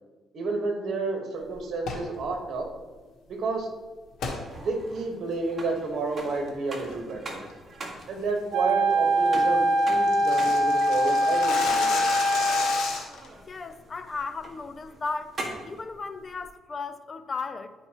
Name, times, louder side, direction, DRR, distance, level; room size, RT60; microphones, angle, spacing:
voice 1, 0.3-2.7 3.3-3.7 4.5-7.4 8.1-12.1, right 3 dB, 65° right, 2 dB, 1.6 m, -30 dB
sound 1, 1.8-2.1 4.2-4.4 4.9-5.0 5.5-5.8 6.2-6.5 6.8-7.1 7.5-7.6 8.0-8.2 8.6-8.7 9.0-9.1 9.3-9.4 9.6-13.3, left 4 dB, 80° left, 1.3 m, -33 dB
sound 2, 4.2-15.8, right 2 dB, 35° right, 1.8 m, -43 dB
Wind instrument woodwind instrument, 8.5-12.9, right 1 dB, 85° right, 0.6 m, -23 dB
voice 2, 13.5-15.4 15.6-17.7, left 4 dB, 35° left, 11 dB, 0.5 m, -35 dB
11.0 x 5.1 x 3.0 m, 1.3 s
cardioid pair, 90°, 0 cm